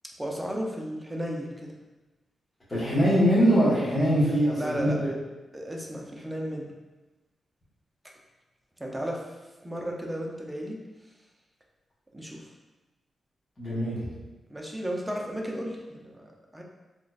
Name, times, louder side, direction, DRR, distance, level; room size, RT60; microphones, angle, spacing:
voice 1, 0.2-1.7 4.3-5.0 5.5-6.7 8.8-9.2 9.6-10.8 12.1-12.5 14.5-16.6, equal, 10° right, -1 dB, 0.6 m, -34 dB
voice 2, 2.7-5.1 13.6-14.0, equal, 25° left, -10 dB, 1.5 m, -22 dB
3.8 x 3.0 x 2.4 m, 1.1 s
cardioid pair, 95°, 0 cm